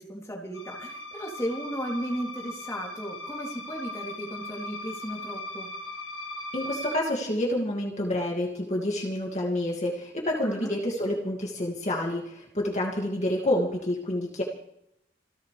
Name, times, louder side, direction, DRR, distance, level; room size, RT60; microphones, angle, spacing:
voice 1, 0.0-5.7 10.4-10.7, equal, 15° left, -2 dB, 3.1 m, -35 dB
sound 1, 0.5-7.0, left 1 dB, 90° left, 2.2 m, -39 dB
voice 2, 6.5-14.4, left 1 dB, 35° left, -2 dB, 2.4 m, -28 dB
27.5 x 15.0 x 3.4 m, 0.77 s
head